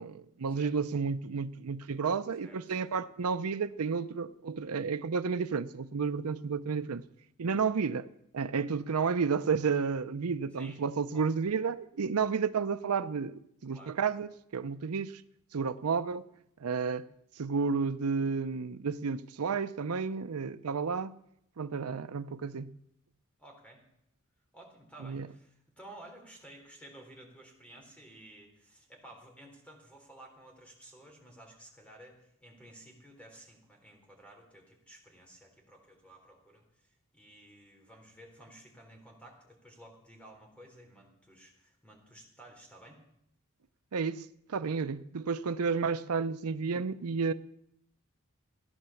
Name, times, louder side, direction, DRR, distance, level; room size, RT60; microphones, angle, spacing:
voice 1, 0.0-7.0 7.4-8.1 8.3-15.2 15.5-16.2 16.6-17.1 17.4-21.1 21.6-22.7 25.0-25.3 43.9-47.3, right 5 dB, 85° right, 0.6 m, -31 dB
voice 2, 2.4-2.9 10.6-10.8 11.1-11.3 13.7-14.0 23.4-23.9 24.5-43.0, right 1 dB, 5° left, 3.6 m, -54 dB
16.0 x 11.0 x 7.1 m
head